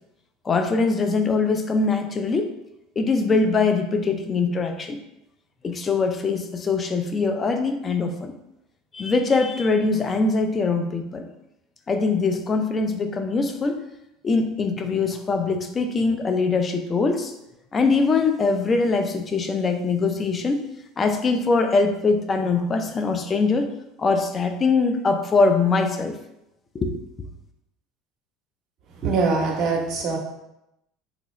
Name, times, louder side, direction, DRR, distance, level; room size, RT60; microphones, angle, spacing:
voice 1, 0.4-2.5 3.0-5.0 5.6-8.3 8.9-11.2 11.9-13.8 14.2-17.3 17.7-20.6 21.0-23.7 24.0-26.1 26.8-27.0, left 4 dB, 30° left, 6 dB, 0.4 m, -22 dB
voice 2, 28.9-30.2, right 4 dB, 50° right, 0 dB, 0.9 m, -23 dB
3.7 x 2.3 x 3.1 m, 0.86 s
hypercardioid pair, 90°, 0 cm